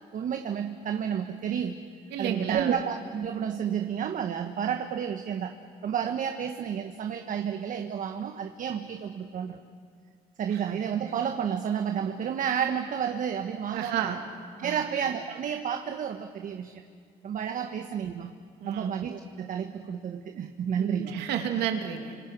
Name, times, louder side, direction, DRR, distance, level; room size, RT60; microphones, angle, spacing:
voice 1, 0.0-1.7 2.2-5.5 5.8-9.6 10.4-14.2 14.6-16.7 17.2-18.3 18.7-21.1, right 8 dB, 50° right, 6 dB, 1.3 m, -31 dB
voice 2, 2.1-2.8 10.5-10.9 13.7-14.2 14.6-14.9 18.6-18.9 20.8-22.2, right 9 dB, 80° right, 4 dB, 2.8 m, -32 dB
30.0 x 26.5 x 6.2 m, 2.1 s
cardioid pair, 110°, 17 cm